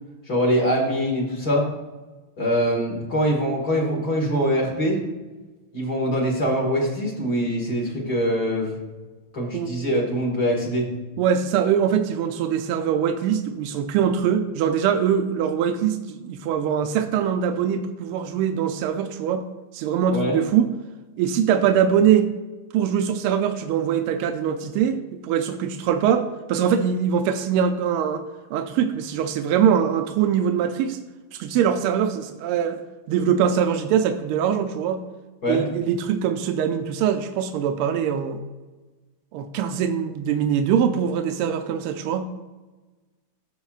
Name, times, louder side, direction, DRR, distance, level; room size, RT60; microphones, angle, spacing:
voice 1, 0.3-1.7 2.4-5.0 5.7-8.8 9.3-10.9 20.1-20.4 35.4-35.6, equal, 45° left, -2 dB, 2.1 m, -23 dB
voice 2, 11.2-19.4 19.7-20.7 21.2-22.3 22.7-28.2 28.5-31.0 31.3-32.8 33.1-35.0 35.5-38.4 39.3-42.3, right 8 dB, 85° right, 6 dB, 1.5 m, -22 dB
14.5 x 5.8 x 2.4 m, 1.2 s
omnidirectional pair, 2.4 m